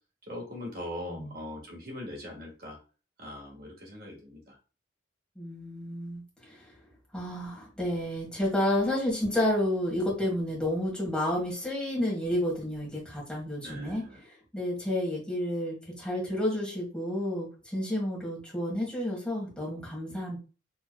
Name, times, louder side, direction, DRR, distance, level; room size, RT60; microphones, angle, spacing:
voice 1, 0.3-2.8 3.2-4.6 13.6-14.2, left 1 dB, 50° right, 0 dB, 1.5 m, -41 dB
voice 2, 5.3-6.7 7.1-20.4, left 1 dB, 5° left, -4 dB, 1.7 m, -31 dB
4.5 x 3.5 x 2.3 m, 0.33 s
head